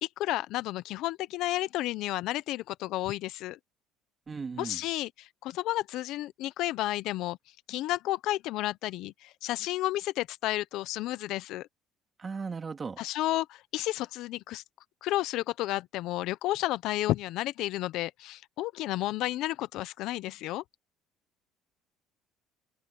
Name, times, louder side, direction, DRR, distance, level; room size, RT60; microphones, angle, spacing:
voice 1, 0.0-3.6 4.6-7.4 7.7-11.7 13.0-14.6 15.0-20.6, left 16 dB, 70° left, 0.7 m, -32 dB
voice 2, 4.3-4.8 12.2-13.0, right 5 dB, 25° right, 2.4 m, -36 dB
cardioid pair, 115°, 0 cm